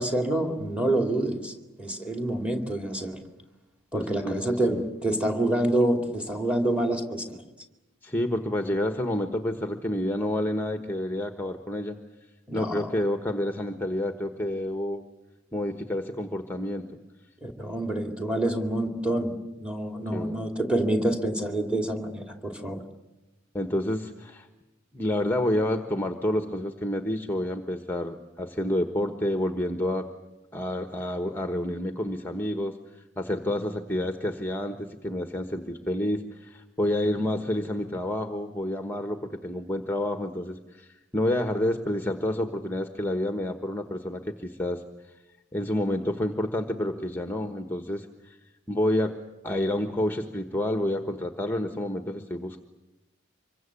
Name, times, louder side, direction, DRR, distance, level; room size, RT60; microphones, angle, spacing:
voice 1, 0.0-1.5 1.8-3.2 3.9-7.4 12.5-12.9 17.4-22.8, right 1 dB, 5° right, 5 dB, 2.7 m, -27 dB
voice 2, 3.9-4.8 8.0-12.0 12.5-15.0 15.5-16.9 20.1-20.4 23.5-24.5 24.9-30.1 30.5-45.1 45.5-48.4 48.7-49.1 49.4-52.6, left 1 dB, 10° left, 6 dB, 1.2 m, -29 dB
26.0 x 23.0 x 8.4 m, 1.0 s
head